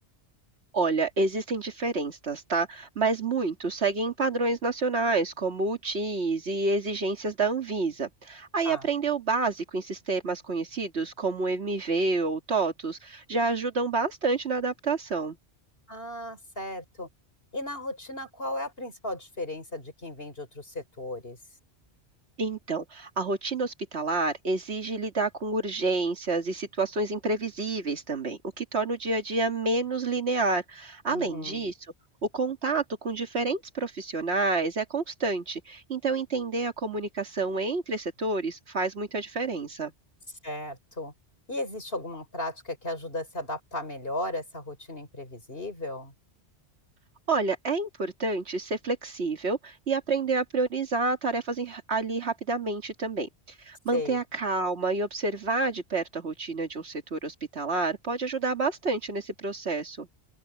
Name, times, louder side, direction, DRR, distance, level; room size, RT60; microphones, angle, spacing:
voice 1, 0.7-15.4 22.4-31.7 32.3-39.9 47.3-53.3 53.6-60.1, right 3 dB, 75° right, 2.1 m, -29 dB
voice 2, 15.9-17.1 17.5-21.4 31.1-31.7 40.4-41.1 41.5-46.1 53.9-54.2, left 1 dB, 60° left, 5.5 m, -35 dB
open air
omnidirectional pair, 1.1 m